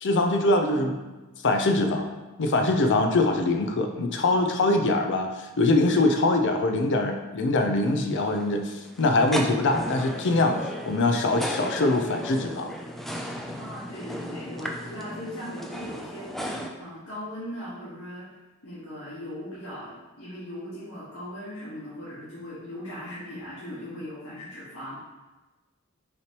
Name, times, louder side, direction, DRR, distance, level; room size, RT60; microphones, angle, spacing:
voice 1, 0.0-1.1 1.4-2.1 2.4-12.7, left 2 dB, 55° left, 5 dB, 0.5 m, -23 dB
sound 1, 7.8-16.7, equal, ahead, 0.3 m, -35 dB
voice 2, 13.6-18.3 18.6-25.0, left 1 dB, 80° left, -11 dB, 1.5 m, -39 dB
5.8 x 3.1 x 2.9 m, 1.2 s
head